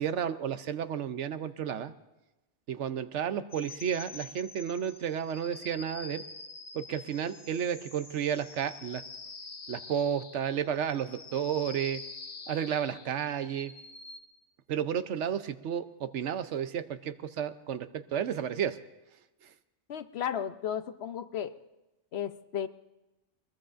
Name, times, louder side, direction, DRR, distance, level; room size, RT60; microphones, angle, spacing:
voice 1, 0.0-1.9 2.7-6.2 6.7-9.0 9.7-12.0 12.5-13.7 14.7-18.8, right 8 dB, 75° right, 11 dB, 1.0 m, -32 dB
sound 1, 3.5-14.2, left 4 dB, 35° left, 1.0 m, -47 dB
voice 2, 19.9-21.6 22.1-22.7, left 9 dB, 65° left, 11 dB, 0.9 m, -34 dB
23.0 x 20.5 x 2.6 m, 1.0 s
omnidirectional pair, 1.2 m